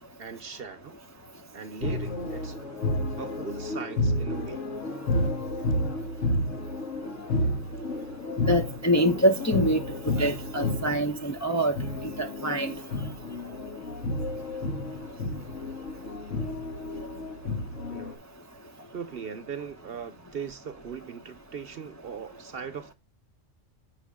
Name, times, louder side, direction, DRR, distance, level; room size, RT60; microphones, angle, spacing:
voice 1, 0.2-1.0 1.5-2.6 2.9-4.7 17.9-18.3 18.9-22.9, right 6 dB, 55° right, 1.0 m, -39 dB
sound 1, 1.8-18.2, left 1 dB, 80° left, 1.8 m, -31 dB
voice 2, 8.5-11.7 12.0-12.7, equal, 20° left, 0.6 m, -25 dB
7.3 x 5.1 x 3.6 m
omnidirectional pair, 1.3 m